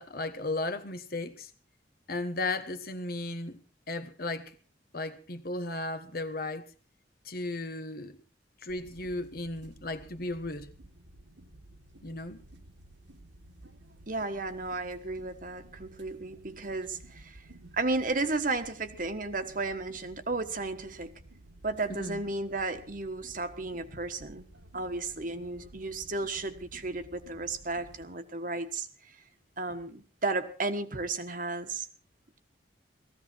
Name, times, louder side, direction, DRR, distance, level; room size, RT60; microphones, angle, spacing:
voice 1, 0.0-1.5 2.1-3.6 3.9-4.6 4.9-6.7 7.2-8.2 8.6-10.7 12.0-12.4 21.9-22.2, left 2 dB, 55° left, 1.3 m, -35 dB
sound 1, 8.7-28.0, right 1 dB, 90° right, 2.2 m, -54 dB
voice 2, 14.1-17.4 17.7-21.1 21.6-24.4 24.7-29.2 29.6-31.9, right 3 dB, 45° right, 1.4 m, -33 dB
18.5 x 15.0 x 4.6 m
head